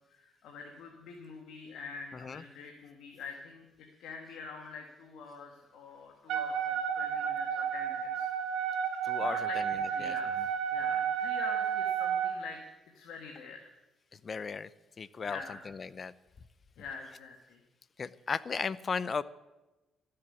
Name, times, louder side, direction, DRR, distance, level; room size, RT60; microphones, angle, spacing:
voice 1, 0.1-8.3 9.2-12.6 12.9-13.7 15.2-15.6 16.8-17.6, left 5 dB, 80° left, 2 dB, 1.9 m, -46 dB
voice 2, 2.1-2.4 9.0-9.5 10.0-10.1 14.2-14.7 15.0-15.4 15.7-16.1 18.0-19.2, left 5 dB, 40° left, 18 dB, 0.6 m, -35 dB
Wind instrument woodwind instrument, 6.3-12.4, right 8 dB, 90° right, 1.8 m, -32 dB
13.5 x 7.7 x 9.7 m, 1.1 s
cardioid pair, 90°, 0 cm